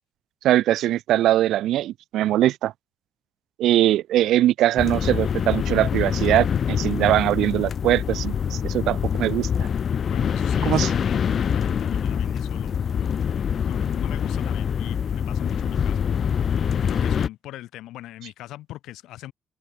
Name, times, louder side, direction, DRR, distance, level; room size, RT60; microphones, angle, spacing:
voice 1, 0.4-2.7 3.6-9.7 10.6-10.9, right 13 dB, 85° right, 0.8 m, -21 dB
sound 1, 4.8-17.3, left 7 dB, 55° left, 1.3 m, -25 dB
voice 2, 10.1-16.1 16.8-19.3, left 15 dB, 90° left, 7.7 m, -40 dB
cardioid pair, 90°, 0 cm